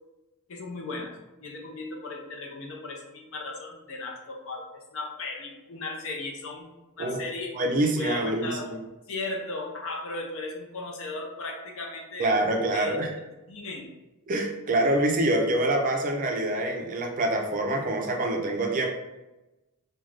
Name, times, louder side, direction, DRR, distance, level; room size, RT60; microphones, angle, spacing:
voice 1, 0.5-1.1 1.4-6.7 7.0-7.5 7.9-8.8 9.1-12.3 12.7-13.0 13.5-13.9, left 2 dB, 65° left, 0 dB, 0.6 m, -36 dB
voice 2, 7.5-8.8 12.2-13.1 14.3-18.9, right 1 dB, 35° right, 2 dB, 0.4 m, -26 dB
2.5 x 2.2 x 3.2 m, 1.0 s
head